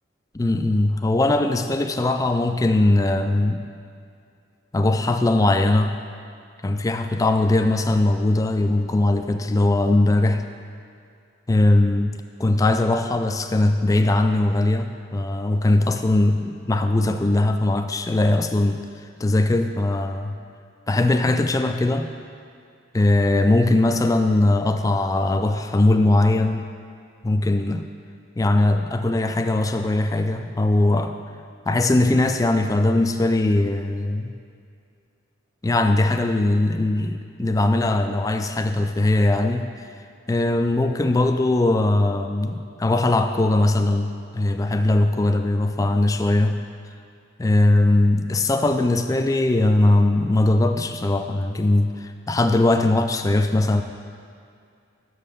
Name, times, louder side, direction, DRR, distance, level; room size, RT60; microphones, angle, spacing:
voice 1, 0.3-3.6 4.7-6.0 6.6-10.4 11.5-12.1 12.4-18.8 19.2-20.4 20.9-22.1 22.9-26.7 27.2-27.8 28.4-31.2 31.7-34.3 35.6-39.7 40.3-46.6 47.4-53.8, left 2 dB, 15° left, 7 dB, 0.3 m, -20 dB
6.4 x 5.5 x 6.7 m, 2.3 s
head